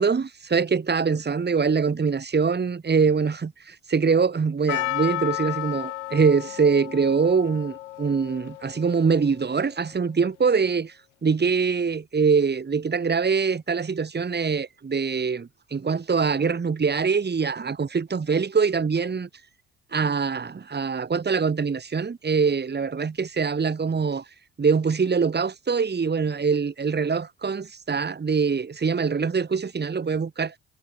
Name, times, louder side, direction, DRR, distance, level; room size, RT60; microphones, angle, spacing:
voice 1, 0.0-11.0 11.2-19.3 19.9-24.2 24.6-30.5, right 5 dB, 30° right, 4.0 m, -23 dB
Percussion, 4.7-9.6, left 15 dB, 75° left, 4.1 m, -33 dB
figure-of-eight pair, 50°, 36 cm